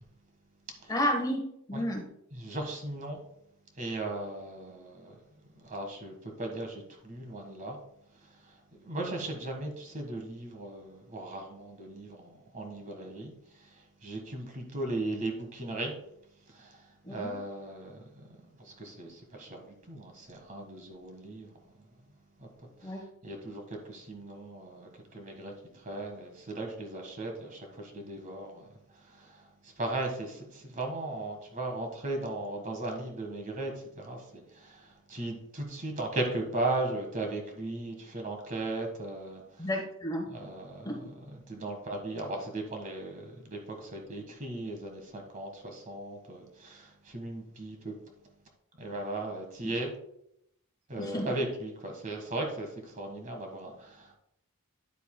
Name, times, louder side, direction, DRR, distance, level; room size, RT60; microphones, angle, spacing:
voice 1, 0.9-1.4 1.7-2.0 17.0-17.4 22.8-23.0 39.6-40.2 40.8-40.9 51.0-51.3, equal, 15° left, 1 dB, 1.2 m, -31 dB
voice 2, 2.3-3.2 3.8-5.1 5.6-7.8 8.8-13.3 14.0-15.9 16.6-16.7 17.1-17.9 18.6-19.6 19.9-21.5 22.4-22.5 23.2-23.6 23.9-25.5 25.8-28.6 29.2-29.3 29.8-33.7 34.0-34.2 34.6-34.8 35.1-39.4 40.3-40.9 41.3-47.9 48.8-49.9 50.9-52.7 53.0-54.2, right 2 dB, 35° right, 3 dB, 1.5 m, -37 dB
9.9 x 8.1 x 2.2 m, 0.75 s
head